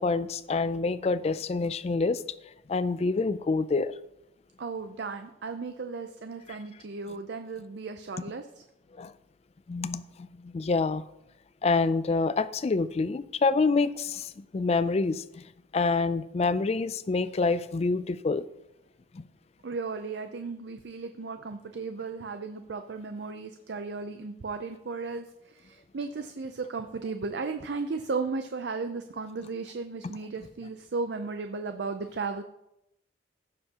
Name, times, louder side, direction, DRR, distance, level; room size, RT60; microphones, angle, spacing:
voice 1, 0.0-2.2 2.7-3.9 9.0-9.1 9.7-10.0 10.4-11.0 11.6-15.2 15.7-18.4 19.1-19.3, left 3 dB, 35° left, 15 dB, 0.3 m, -27 dB
voice 2, 4.6-8.6 19.6-32.4, right 4 dB, 65° right, 7 dB, 0.5 m, -35 dB
15.0 x 6.7 x 2.9 m, 0.86 s
head